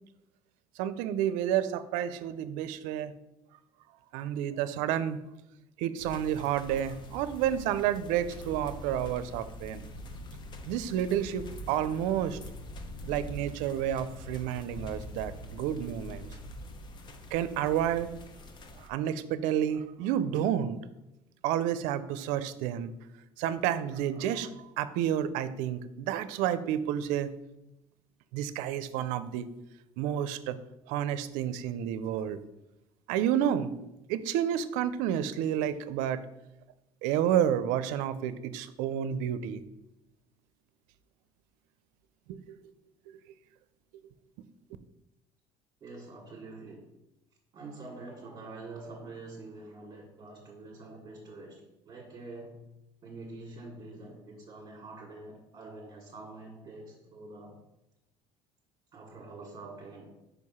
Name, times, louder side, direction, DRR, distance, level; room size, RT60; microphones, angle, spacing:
voice 1, 0.8-3.1 4.1-5.2 5.8-9.9 10.7-12.4 13.1-16.3 17.3-18.1 18.8-20.8 21.4-22.9 23.4-27.3 28.3-29.5 30.0-30.6 30.9-32.4 33.1-33.7 34.1-36.2 37.0-39.6 42.3-42.6, right 10 dB, 80° right, 13 dB, 0.5 m, -30 dB
sound 1, 6.0-18.9, left 1 dB, 35° left, 0.8 m, -44 dB
voice 2, 45.8-46.9 47.5-52.6 53.0-57.5 58.9-60.1, right 2 dB, 35° right, -3 dB, 1.5 m, -46 dB
5.1 x 4.7 x 5.5 m, 0.92 s
cardioid pair, 130°, 13 cm